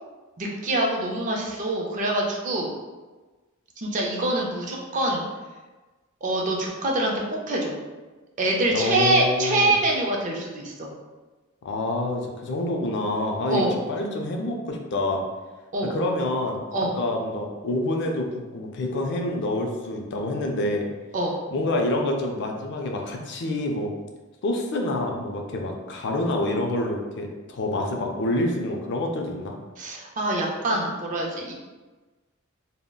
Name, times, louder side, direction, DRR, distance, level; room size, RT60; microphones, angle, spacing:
voice 1, 0.4-2.7 3.8-5.3 6.2-7.8 8.4-10.9 13.5-13.7 15.7-16.0 16.7-17.0 21.1-21.4 29.8-31.5, right 1 dB, 35° right, -1 dB, 0.4 m, -25 dB
voice 2, 8.7-9.8 11.6-15.2 15.9-16.6 16.9-18.3 18.5-20.9 21.5-23.9 24.4-29.6, left 1 dB, 55° left, 1 dB, 0.4 m, -27 dB
3.6 x 2.0 x 2.2 m, 1.2 s
head